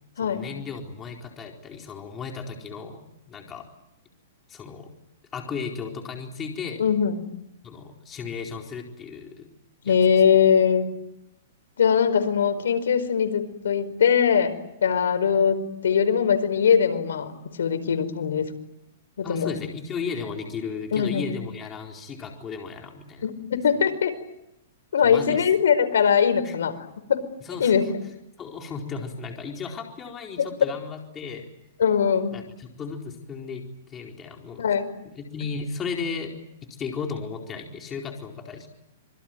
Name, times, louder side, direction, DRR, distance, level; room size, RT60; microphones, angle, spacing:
voice 1, 0.2-3.0 3.3-3.7 4.5-4.9 5.3-6.8 7.6-9.5 9.8-10.0 10.3-10.4 19.2-23.3 25.0-25.4 26.4-26.5 27.4-27.9 28.4-31.5 32.3-33.6 33.9-34.6 35.1-36.4 36.8-38.7, left 5 dB, 15° left, 2 dB, 4.3 m, -35 dB
voice 2, 6.8-7.2 9.8-10.9 11.8-18.5 19.2-19.6 20.9-21.3 23.2-24.1 24.9-26.7 27.1-27.2 27.6-27.8 30.4-30.5 31.8-32.3 34.6-34.9, left 7 dB, 85° left, 9 dB, 4.8 m, -21 dB
26.5 x 23.0 x 9.4 m, 0.85 s
hypercardioid pair, 160°, 0 cm